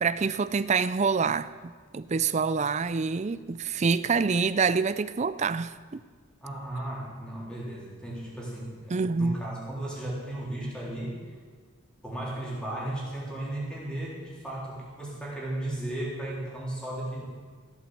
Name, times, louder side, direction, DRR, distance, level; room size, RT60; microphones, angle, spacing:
voice 1, 0.0-6.0 8.9-9.4, right 5 dB, 30° right, 15 dB, 0.4 m, -26 dB
voice 2, 6.4-11.2 12.0-17.2, right 1 dB, 5° left, -6 dB, 3.6 m, -35 dB
14.5 x 8.1 x 7.8 m, 1.5 s
head